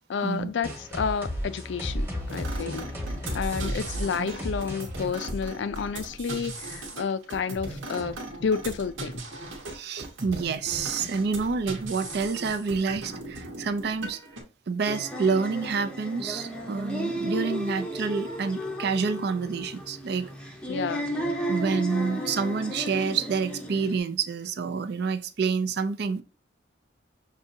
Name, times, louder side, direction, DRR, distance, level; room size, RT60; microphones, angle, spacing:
voice 1, 0.1-2.8 3.3-9.1 20.7-21.0, left 6 dB, 65° left, 0.4 m, -30 dB
sound 1, 0.6-6.1, equal, 10° right, 1.2 m, -34 dB
sound 2, 2.3-14.4, right 2 dB, 85° right, 1.2 m, -38 dB
voice 2, 9.7-14.2 14.7-20.4 21.5-26.2, right 5 dB, 55° right, 0.4 m, -28 dB
sound 3, 14.9-24.0, right 1 dB, 5° left, 0.6 m, -34 dB
6.3 x 2.7 x 2.6 m
head